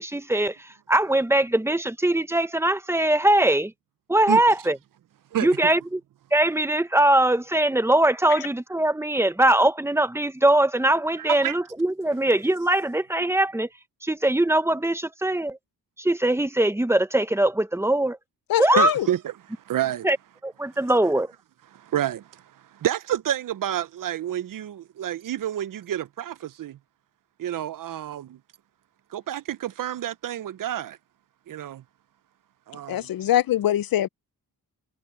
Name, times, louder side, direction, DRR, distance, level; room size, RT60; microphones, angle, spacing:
voice 1, 0.0-3.7 4.1-4.8 5.4-6.0 6.3-13.7 14.0-15.6 16.0-18.2 18.6-18.9 20.0-20.2 20.4-21.3, right 1 dB, 5° right, 0.8 m, -21 dB
voice 2, 11.2-11.5 18.8-19.2 19.7-20.1 21.7-22.4 22.7-26.8 27.4-28.4 29.1-31.0 31.5-31.8 32.7-33.1, right 11 dB, 55° right, 0.5 m, -29 dB
voice 3, 18.5-19.1 32.9-34.1, left 12 dB, 65° left, 0.5 m, -23 dB
wide cardioid pair, 135°, 39 cm